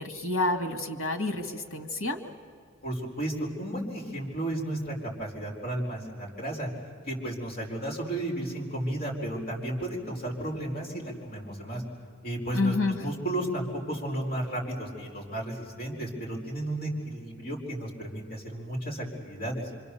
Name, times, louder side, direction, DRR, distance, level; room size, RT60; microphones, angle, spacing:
voice 1, 0.0-2.2 12.5-13.0, left 2 dB, 90° left, 6 dB, 2.3 m, -29 dB
voice 2, 2.8-6.7 7.1-11.8 12.2-19.6, right 1 dB, 45° left, -2 dB, 4.5 m, -33 dB
27.0 x 25.5 x 7.0 m, 2.1 s
head